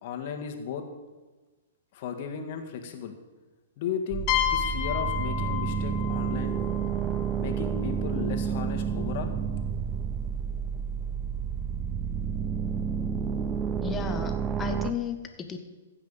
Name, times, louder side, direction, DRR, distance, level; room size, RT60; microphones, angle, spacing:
voice 1, 0.0-0.9 1.9-3.1 3.8-6.6 7.4-9.3, left 7 dB, 50° left, 5 dB, 1.8 m, -35 dB
sound 1, 4.1-14.9, right 7 dB, 20° right, 0.6 m, -30 dB
sound 2, 4.3-7.9, left 12 dB, 35° left, 1.0 m, -31 dB
voice 2, 13.8-15.6, left 7 dB, 15° left, 6 dB, 1.3 m, -34 dB
15.0 x 5.9 x 7.0 m, 1.3 s
hypercardioid pair, 130°, 0 cm